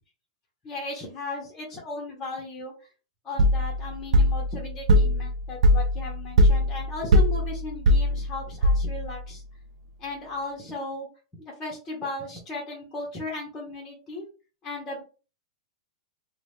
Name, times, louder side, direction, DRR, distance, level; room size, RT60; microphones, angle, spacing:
voice 1, 0.6-2.9 3.2-9.4 10.0-11.1 11.5-14.2 14.6-15.0, left 2 dB, 15° left, -2 dB, 0.7 m, -36 dB
sound 1, 3.4-9.2, equal, 75° right, 0.4 m, -21 dB
2.8 x 2.0 x 3.3 m, 0.34 s
supercardioid pair, 165°, 4 cm